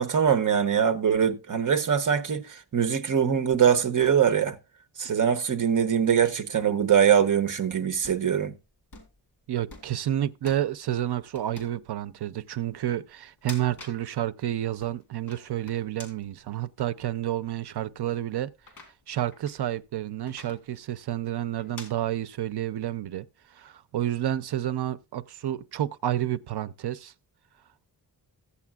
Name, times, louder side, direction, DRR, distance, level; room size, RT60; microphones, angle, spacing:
voice 1, 0.0-4.6 5.0-8.5, right 8 dB, 50° right, 0.9 m, -23 dB
sound 1, 6.4-7.3 7.9-8.2 8.9-9.2 9.7-10.0 10.5-10.7 11.3-11.8 12.4-12.5 13.3-14.0 14.5-16.3 16.8-16.9 17.7-17.8 18.6-19.6 20.3-20.6 21.6-21.9, left 3 dB, 55° left, 3.3 m, -47 dB
voice 2, 9.5-18.5 19.1-23.3 23.5-27.1, right 12 dB, 75° right, 0.6 m, -30 dB
15.0 x 8.4 x 2.3 m
wide cardioid pair, 155°, 40 cm